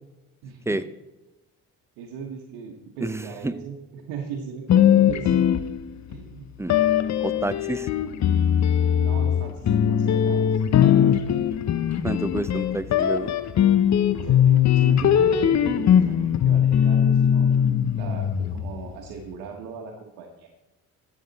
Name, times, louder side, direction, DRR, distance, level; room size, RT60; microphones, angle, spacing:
voice 1, 0.4-0.8 2.0-5.5 6.1-6.5 9.0-10.6 14.2-17.5 17.9-20.5, right 6 dB, 90° right, 0 dB, 1.3 m, -37 dB
voice 2, 3.0-3.6 6.6-6.8 7.2-7.9 12.0-13.4, right 2 dB, 10° right, 14 dB, 0.5 m, -29 dB
sound 1, 4.7-6.2 6.7-18.9, left 9 dB, 50° left, 0.7 m, -20 dB
12.5 x 7.9 x 4.0 m, 1.0 s
supercardioid pair, 75°, 36 cm